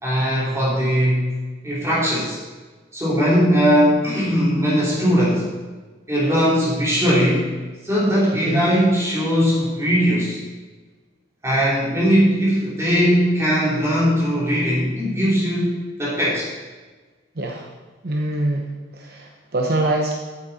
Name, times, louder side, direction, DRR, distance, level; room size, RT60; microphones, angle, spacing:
voice 1, 0.0-1.2 1.6-2.4 2.9-5.5 6.1-7.4 7.8-10.4 11.4-16.5, equal, 15° right, -7 dB, 3.1 m, -19 dB
voice 2, 17.4-17.7 18.0-18.7 18.9-20.2, right 1 dB, 55° right, 1 dB, 0.9 m, -24 dB
8.6 x 8.5 x 4.1 m, 1.3 s
head